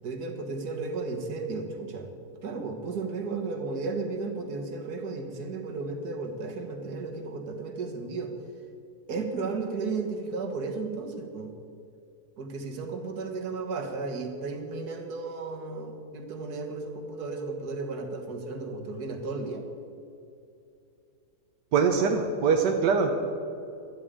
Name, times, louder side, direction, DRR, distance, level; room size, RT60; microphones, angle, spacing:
voice 1, 0.0-2.1 2.4-8.3 9.1-11.5 12.4-19.6, right 3 dB, 70° right, 4 dB, 2.0 m, -34 dB
voice 2, 21.7-23.1, right 5 dB, 90° right, 3 dB, 1.6 m, -23 dB
12.5 x 8.7 x 8.8 m, 2.7 s
omnidirectional pair, 1.8 m